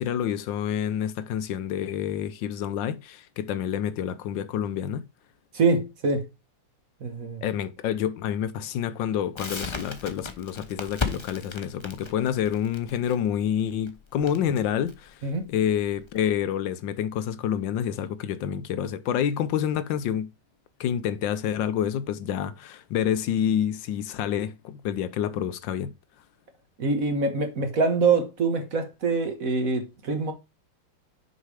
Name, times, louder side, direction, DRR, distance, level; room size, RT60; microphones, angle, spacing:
voice 1, 0.0-5.0 7.4-15.2 15.5-20.3 20.8-25.9, left 9 dB, 75° left, 1.4 m, -28 dB
voice 2, 5.5-6.3 7.0-7.4 15.2-15.5 26.8-30.3, right 4 dB, 50° right, 1.6 m, -25 dB
Crackle, 9.4-16.2, left 4 dB, 25° left, 0.6 m, -36 dB
6.4 x 5.1 x 4.8 m
omnidirectional pair, 2.1 m